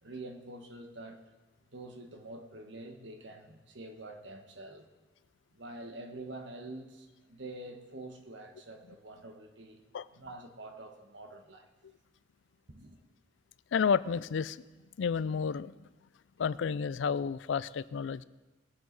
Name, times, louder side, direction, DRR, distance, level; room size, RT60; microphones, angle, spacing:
voice 1, 0.0-1.2 1.7-4.9 5.5-9.8 10.1-11.7 12.7-13.0, right 2 dB, 75° right, 1.4 m, -46 dB
voice 2, 13.7-14.6 15.0-15.7 16.4-18.2, left 6 dB, 85° left, 0.4 m, -31 dB
19.5 x 7.8 x 4.0 m
head